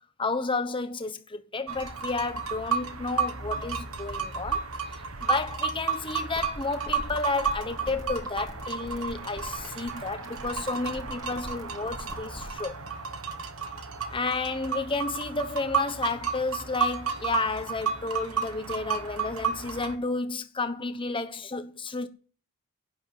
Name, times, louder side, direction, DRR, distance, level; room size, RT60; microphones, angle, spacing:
voice 1, 0.2-4.7 5.2-12.8 14.1-22.1, left 3 dB, 25° left, 1.1 m, -31 dB
sound 1, 1.7-20.0, right 6 dB, 80° right, 1.5 m, -32 dB
sound 2, 6.4-12.6, equal, 20° right, 2.4 m, -42 dB
11.0 x 9.3 x 7.8 m
head